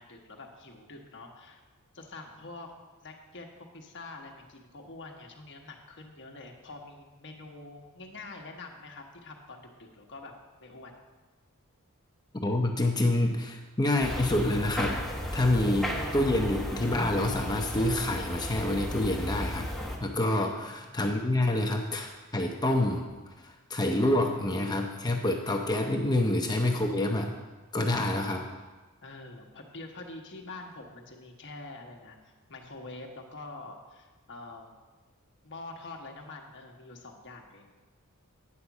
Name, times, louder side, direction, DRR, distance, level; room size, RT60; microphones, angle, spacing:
voice 1, 0.0-1.6 1.9-2.7 3.0-10.3 10.6-10.9 15.5-15.6 20.3-21.0 29.0-34.7 35.4-37.7, left 3 dB, 55° left, 2 dB, 1.2 m, -46 dB
voice 2, 12.4-15.0 15.3-19.7 20.0-23.0 23.4-27.3 27.7-28.4, left 1 dB, 20° left, 2 dB, 0.6 m, -27 dB
sound 1, 14.0-20.0, left 1 dB, ahead, 1.2 m, -34 dB
9.6 x 5.1 x 7.1 m, 1.3 s
head